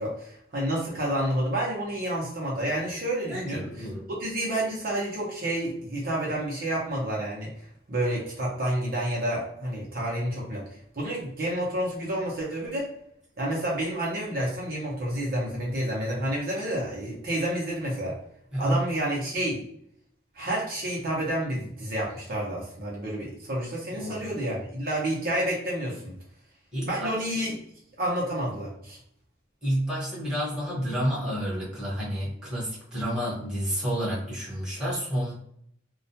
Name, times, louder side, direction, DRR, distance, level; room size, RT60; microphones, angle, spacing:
voice 1, 0.0-12.9 13.4-18.2 18.6-19.7 20.3-26.2 26.9-27.6 28.0-29.0, right 1 dB, 50° right, -4 dB, 0.6 m, -29 dB
voice 2, 3.3-4.0 18.5-18.8 23.9-24.3 26.7-27.1 29.6-35.3, equal, 5° right, -8 dB, 1.1 m, -29 dB
2.2 x 2.1 x 2.7 m, 0.68 s
head